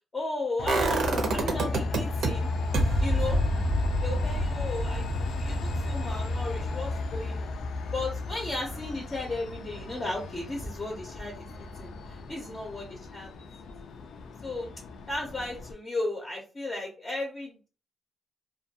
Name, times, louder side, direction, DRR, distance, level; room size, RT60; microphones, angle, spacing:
voice 1, 0.1-2.5 3.0-3.4 4.0-7.5 7.9-13.3 13.8-13.9 14.4-14.7 15.1-17.7, left 2 dB, 20° left, -1 dB, 0.5 m, -35 dB
Train, 0.6-15.7, left 2 dB, 85° left, 0.3 m, -34 dB
sound 1, 0.7-2.3 2.7-8.6 8.9-9.0, right 1 dB, 80° right, 0.6 m, -29 dB
2.2 x 2.2 x 2.7 m, 0.35 s
wide cardioid pair, 170°, 0 cm